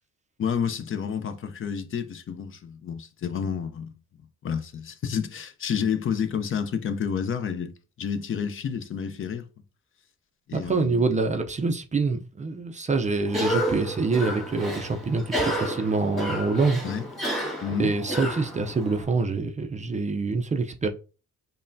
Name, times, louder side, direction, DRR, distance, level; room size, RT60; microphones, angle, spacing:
voice 1, 0.4-3.9 4.4-7.7 8.0-9.4 10.5-11.1 16.8-17.1 17.6-17.9, left 7 dB, 45° left, 0.5 m, -29 dB
voice 2, 10.5-16.8 17.8-20.9, right 4 dB, 25° right, 0.4 m, -26 dB
Cough, 13.3-19.0, equal, ahead, 1.5 m, -31 dB
5.4 x 2.1 x 2.6 m
cardioid pair, 90°, 30 cm